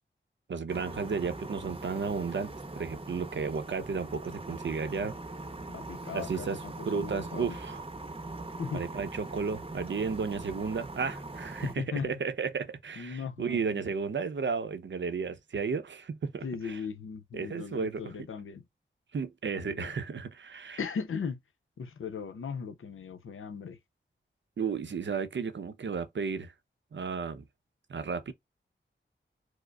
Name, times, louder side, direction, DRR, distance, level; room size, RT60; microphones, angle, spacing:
voice 1, 0.5-5.2 6.1-7.8 8.7-16.8 17.3-18.1 19.1-20.8 24.6-26.5 26.9-27.4 27.9-28.3, right 5 dB, 65° right, 0.6 m, -33 dB
sound 1, 0.7-11.7, right 2 dB, 30° right, 0.7 m, -41 dB
voice 2, 5.7-7.6 8.6-8.8 11.6-12.2 13.0-13.8 16.4-18.6 19.5-19.9 20.8-21.4 21.8-23.8, left 6 dB, 90° left, 0.6 m, -38 dB
4.8 x 2.0 x 2.2 m
cardioid pair, 50°, 20 cm